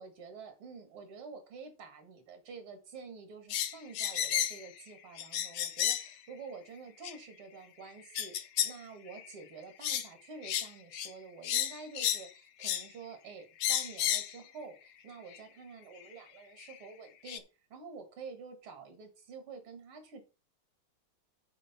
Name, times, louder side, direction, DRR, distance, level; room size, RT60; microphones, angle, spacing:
voice 1, 0.0-17.4 17.7-20.2, right 5 dB, 90° right, 5 dB, 2.8 m, -48 dB
sound 1, 3.5-4.7 5.2-6.1 7.0-7.1 8.2-8.8 9.1-9.3 9.8-10.1 10.4-10.7 10.9-11.1 11.4-12.3 12.6-12.9 13.6-14.3 15.3-15.4 16.6-16.7 17.3-17.4, left 10 dB, 80° left, 1.6 m, -32 dB
9.0 x 4.5 x 5.8 m, 0.31 s
omnidirectional pair, 2.3 m